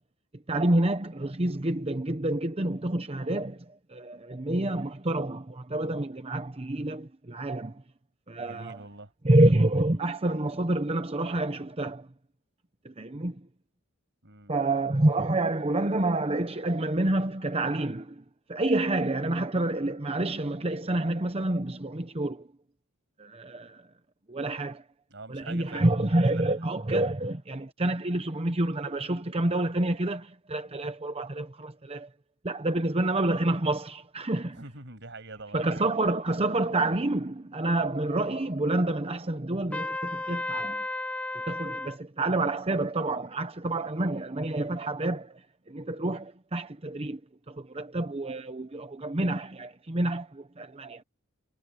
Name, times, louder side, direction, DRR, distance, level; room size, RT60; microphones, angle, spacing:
voice 1, 0.5-7.7 8.3-8.8 9.2-12.1 12.8-13.4 14.5-18.2 18.5-22.5 23.2-23.8 24.3-24.8 25.3-32.1 32.4-34.6 35.5-40.8 41.3-45.4 45.7-47.2 47.5-51.0, right 2 dB, 30° right, 0.9 m, -28 dB
voice 2, 8.4-9.1 14.2-14.5 25.1-26.6 34.6-35.8, right 2 dB, 55° right, 7.2 m, -45 dB
Trumpet, 39.7-42.0, left 2 dB, 5° left, 1.0 m, -33 dB
head